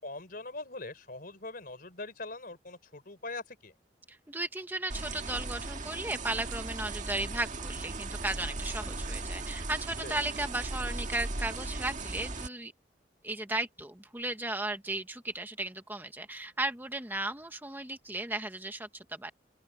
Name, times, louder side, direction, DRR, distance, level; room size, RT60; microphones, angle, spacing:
voice 1, 0.0-3.7 10.0-10.2, left 2 dB, 50° left, 3.9 m, -42 dB
voice 2, 4.1-12.7 13.2-19.3, right 2 dB, 10° right, 1.1 m, -35 dB
sound 1, 4.9-12.5, right 2 dB, 45° right, 1.9 m, -37 dB
open air
head